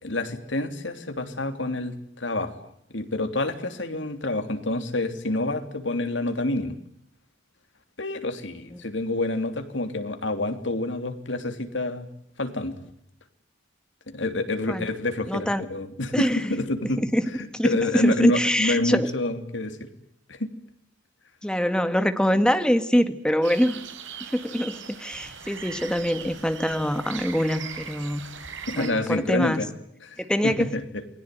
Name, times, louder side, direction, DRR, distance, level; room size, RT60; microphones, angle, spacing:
voice 1, 0.0-6.8 8.0-12.1 12.4-12.8 14.1-17.0 17.4-19.9 20.3-20.5 28.7-29.7 30.0-31.0, left 2 dB, 75° left, 8 dB, 3.4 m, -28 dB
voice 2, 15.3-15.7 16.1-16.5 17.0-17.2 17.5-19.1 21.4-23.8 24.3-28.2 28.7-29.6 30.2-30.7, equal, 5° left, 9 dB, 1.9 m, -24 dB
sound 1, 23.4-28.9, right 7 dB, 85° right, 4.8 m, -39 dB
29.0 x 21.5 x 9.4 m, 0.73 s
head